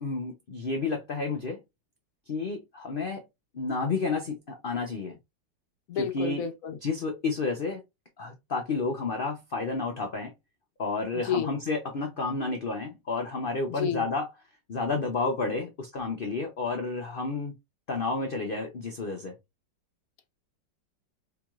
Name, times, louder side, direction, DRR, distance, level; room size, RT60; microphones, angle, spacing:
voice 1, 0.0-1.6 2.3-3.2 3.5-5.1 5.9-6.4 6.8-7.8 8.2-10.3 10.8-14.3 14.7-17.5 17.9-19.3, left 3 dB, 85° left, 0.4 m, -31 dB
voice 2, 5.9-6.8 11.1-11.5 13.8-14.0, left 7 dB, 60° left, 1.0 m, -30 dB
4.5 x 3.0 x 2.3 m
omnidirectional pair, 1.9 m